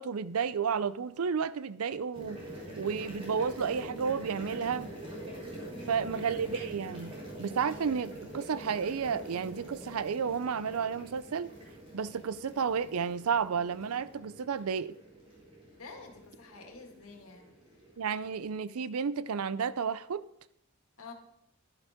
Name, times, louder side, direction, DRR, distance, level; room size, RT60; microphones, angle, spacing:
voice 1, 0.0-2.4 2.8-4.9 5.9-7.1 7.4-11.5 11.9-14.9 18.0-20.2, right 6 dB, 90° right, 0.5 m, -32 dB
sound 1, 2.1-18.6, right 1 dB, 25° right, 4.1 m, -45 dB
voice 2, 5.7-6.2 15.8-17.5 21.0-21.1, left 3 dB, 80° left, 2.1 m, -48 dB
12.0 x 11.0 x 3.7 m
head